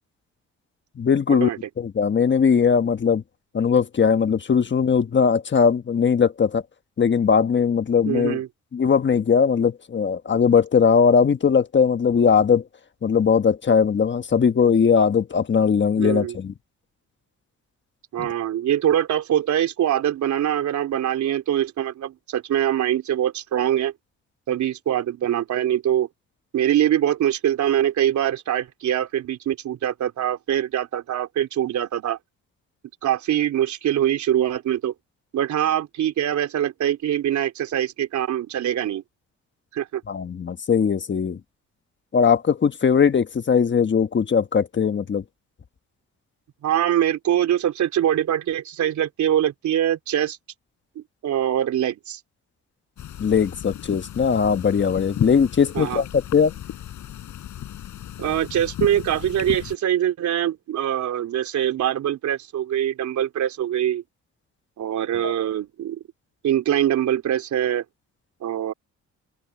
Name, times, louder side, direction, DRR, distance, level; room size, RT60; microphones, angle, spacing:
voice 1, 1.0-1.5 1.8-3.2 3.5-6.6 7.0-8.4 8.7-12.6 13.0-16.5 18.2-18.3 40.1-41.4 42.1-45.2 53.2-56.5 65.2-65.3, left 6 dB, 40° left, 1.4 m, -19 dB
voice 2, 8.1-8.5 16.0-16.4 18.1-23.9 24.5-26.1 26.5-32.2 33.0-34.9 35.3-39.0 39.7-40.0 46.6-50.4 51.0-52.2 55.7-56.0 58.2-64.0 64.8-66.0 66.4-67.8 68.4-68.7, right 11 dB, 70° right, 3.7 m, -23 dB
sound 1, 53.0-59.8, left 11 dB, 70° left, 4.4 m, -34 dB
open air
cardioid pair, 90°, 30 cm